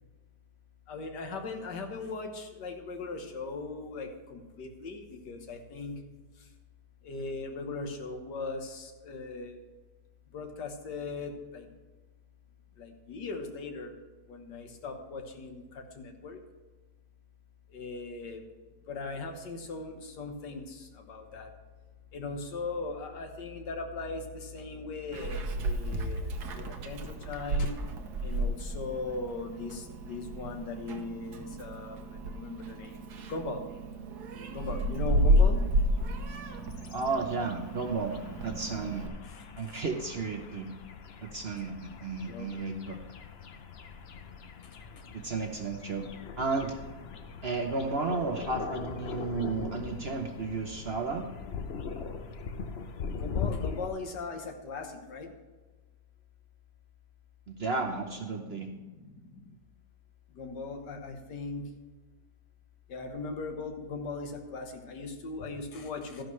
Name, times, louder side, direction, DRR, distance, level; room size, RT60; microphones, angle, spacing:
voice 1, 0.9-6.0 6.4-6.5 7.0-9.6 10.3-11.7 12.8-14.0 14.3-16.4 17.7-18.4 18.9-21.5 22.1-27.8 28.2-33.6 34.5-35.6 39.2-39.8 42.2-42.5 47.1-47.2 53.1-55.3 58.4-59.5 60.3-61.7 62.9-66.2, left 3 dB, 80° left, 5 dB, 1.8 m, -39 dB
Meow, 25.1-39.1, equal, 70° right, 1.5 m, -31 dB
sound 1, 36.1-53.9, left 5 dB, 50° left, 0.8 m, -41 dB
voice 2, 36.9-38.1 38.4-39.1 39.6-40.7 41.2-43.0 45.1-46.1 46.4-46.7 47.4-51.2 57.5-58.7, right 4 dB, 45° right, 3 dB, 0.9 m, -33 dB
13.0 x 11.0 x 3.2 m, 1.3 s
omnidirectional pair, 1.8 m